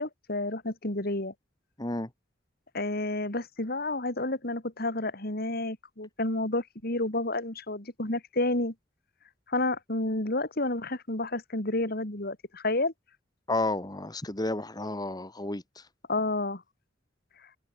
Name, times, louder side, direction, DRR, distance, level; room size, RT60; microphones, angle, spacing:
voice 1, 0.0-1.3 2.7-8.7 9.5-12.9 16.1-16.6, left 2 dB, 55° left, 3.6 m, -30 dB
voice 2, 1.8-2.1 13.5-15.8, left 2 dB, 20° left, 1.9 m, -31 dB
head